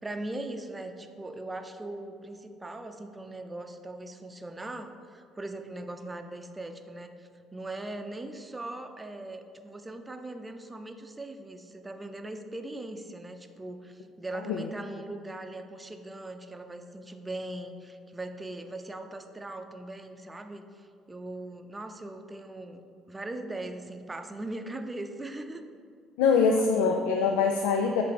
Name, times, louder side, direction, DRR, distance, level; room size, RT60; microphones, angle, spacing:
voice 1, 0.0-22.8 23.1-25.7 26.5-26.7, right 2 dB, 20° right, 7 dB, 0.6 m, -40 dB
voice 2, 26.2-28.0, left 5 dB, 85° left, 4 dB, 0.4 m, -24 dB
8.0 x 3.4 x 5.0 m, 2.3 s
supercardioid pair, 65°, 0 cm